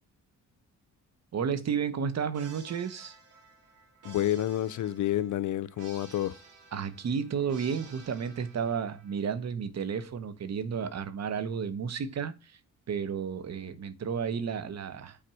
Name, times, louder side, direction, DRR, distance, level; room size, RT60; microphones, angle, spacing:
voice 1, 1.3-3.1 6.7-12.6 12.9-15.2, right 7 dB, 55° right, 1.0 m, -32 dB
sound 1, 2.3-9.2, right 4 dB, 75° right, 1.9 m, -53 dB
voice 2, 4.0-6.3, left 13 dB, 70° left, 0.6 m, -29 dB
5.7 x 4.2 x 6.2 m
cardioid pair, 70°, 31 cm